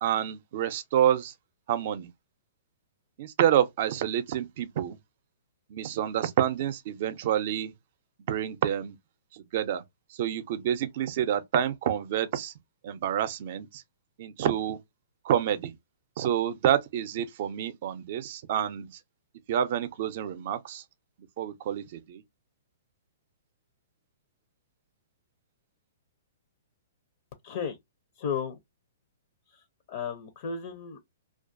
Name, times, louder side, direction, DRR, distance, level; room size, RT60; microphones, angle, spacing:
voice 1, 0.0-1.3 1.7-2.1 3.2-5.0 5.7-7.7 8.3-9.0 9.3-9.8 10.1-12.5 12.8-13.8 14.2-14.8 15.2-15.8 16.2-18.9 19.5-20.8 21.4-22.2, right 10 dB, 55° right, 0.4 m, -28 dB
voice 2, 27.4-27.8 28.2-28.6 29.5-31.0, left 6 dB, 55° left, 0.5 m, -34 dB
2.3 x 2.2 x 2.5 m
hypercardioid pair, 130°, 0 cm